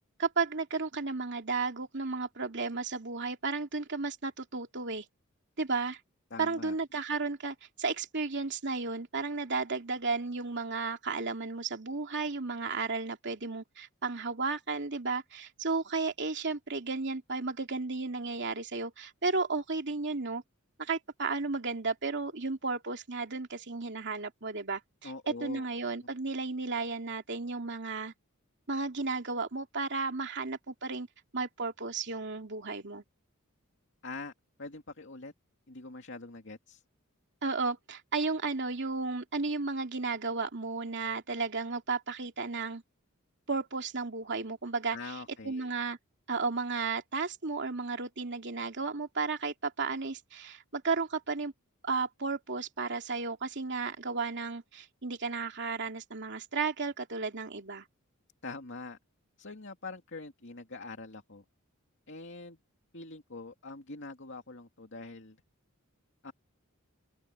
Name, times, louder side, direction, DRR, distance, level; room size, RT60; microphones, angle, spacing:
voice 1, 0.2-5.0 5.6-6.0 6.4-20.4 20.8-28.1 28.7-31.1 31.3-33.0 37.4-42.8 43.5-45.1 45.4-46.0 46.3-51.5 51.8-57.8, right 4 dB, 55° right, 2.8 m, -33 dB
voice 2, 6.3-6.8 25.0-25.7 34.0-34.3 34.6-35.3 35.7-36.8 44.9-45.7 58.4-59.0 59.4-61.4 62.1-62.6 62.9-65.4 66.2-66.3, left 3 dB, 60° left, 2.5 m, -44 dB
open air
head